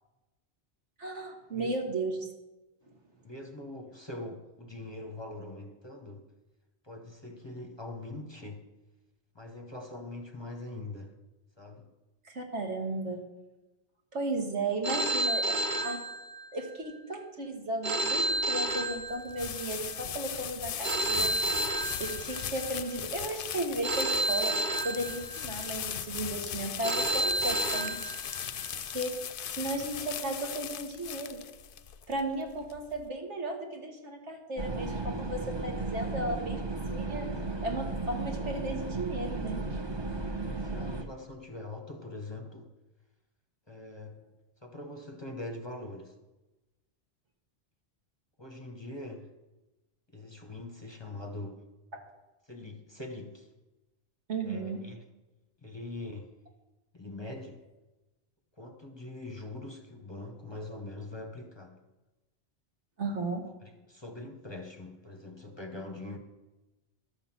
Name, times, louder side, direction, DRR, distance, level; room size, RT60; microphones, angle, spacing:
voice 1, 1.0-2.3 12.2-13.2 14.1-16.0 16.5-21.6 22.0-24.6 24.8-28.1 28.8-29.1 29.5-31.4 32.1-37.3 37.6-39.6 54.3-54.8 63.0-63.5, right 2 dB, 85° right, 2 dB, 2.0 m, -35 dB
voice 2, 3.2-6.3 6.8-8.7 9.3-11.1 11.6-11.9 40.6-42.7 43.7-44.2 44.6-46.2 48.4-49.3 50.1-51.6 52.5-53.5 54.4-55.0 55.6-56.3 56.9-57.6 58.6-61.8 63.6-66.2, left 2 dB, 25° left, 4 dB, 0.8 m, -43 dB
Telephone, 14.8-16.7 17.8-19.7 20.8-22.7 23.8-25.7 26.8-28.7, right 1 dB, 45° right, 1.1 m, -31 dB
sound 1, 18.2-33.1, left 9 dB, 60° left, 0.7 m, -38 dB
sound 2, 34.6-41.0, right 3 dB, 25° right, 0.8 m, -35 dB
12.0 x 5.8 x 7.4 m, 1.1 s
omnidirectional pair, 1.2 m